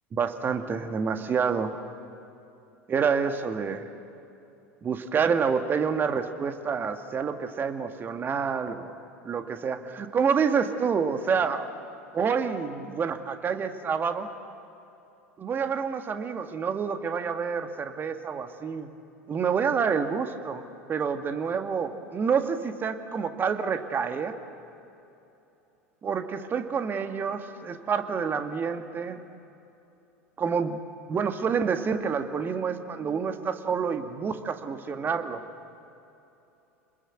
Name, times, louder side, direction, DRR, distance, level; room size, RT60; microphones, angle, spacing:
voice 1, 0.1-1.9 2.9-3.9 4.8-8.9 9.2-11.7 12.1-14.3 15.4-18.9 19.3-20.6 20.9-24.4 26.0-29.2 30.4-30.8 31.1-35.4, right 6 dB, 25° right, 7 dB, 1.8 m, -28 dB
30.0 x 21.0 x 7.9 m, 2.8 s
figure-of-eight pair, 80°, 8 cm